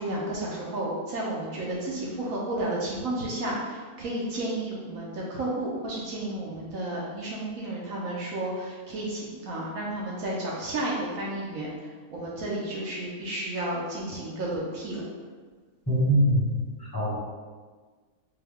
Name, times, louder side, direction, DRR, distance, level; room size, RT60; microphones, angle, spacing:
voice 1, 0.0-15.1, right 1 dB, 65° right, -4 dB, 1.0 m, -32 dB
voice 2, 15.9-17.2, equal, 15° left, -8 dB, 0.9 m, -24 dB
4.5 x 2.2 x 3.4 m, 1.4 s
omnidirectional pair, 1.7 m